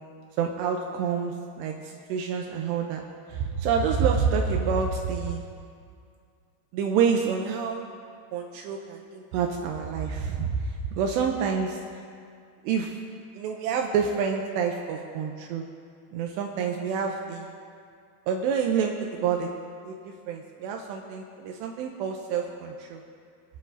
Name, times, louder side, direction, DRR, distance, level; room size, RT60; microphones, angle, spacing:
voice 1, 0.4-3.0 3.3-5.4 6.7-7.8 8.3-11.8 12.6-13.0 13.4-15.7 16.1-17.6 18.3-19.5 19.8-23.0, right 6 dB, 85° right, 2 dB, 2.6 m, -28 dB
20.5 x 9.8 x 2.7 m, 2.2 s
omnidirectional pair, 5.2 m